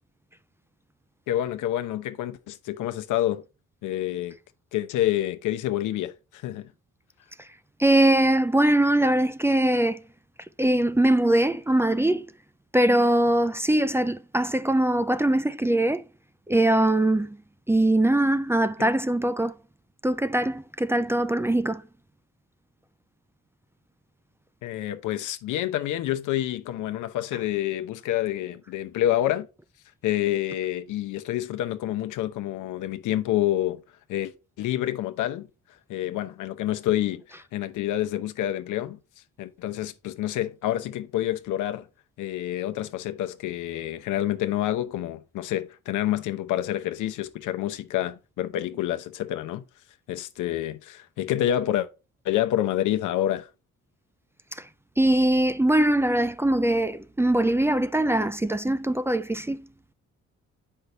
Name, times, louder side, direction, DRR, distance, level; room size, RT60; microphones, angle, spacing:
voice 1, 1.3-3.4 3.8-4.4 4.7-6.7 24.6-29.5 30.0-33.8 34.1-34.3 34.6-35.5 35.9-39.0 39.4-41.9 42.2-49.6 50.1-51.9 52.2-53.5, left 13 dB, 85° left, 0.8 m, -28 dB
voice 2, 7.8-10.0 10.6-12.3 12.7-16.0 16.5-17.4 17.7-19.6 20.0-21.8 54.5-54.7 55.0-59.7, right 1 dB, 10° right, 0.4 m, -22 dB
8.1 x 5.6 x 3.2 m
cardioid pair, 90°, 30 cm